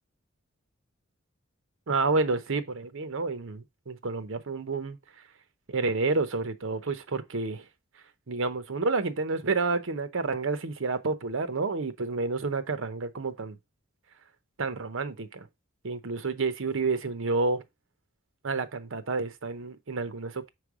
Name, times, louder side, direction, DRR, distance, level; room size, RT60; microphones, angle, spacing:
voice 1, 1.9-5.2 5.7-7.6 8.3-13.6 14.6-15.5 15.8-17.6 18.4-20.5, right 3 dB, 65° right, 0.8 m, -29 dB
6.0 x 3.3 x 4.7 m
head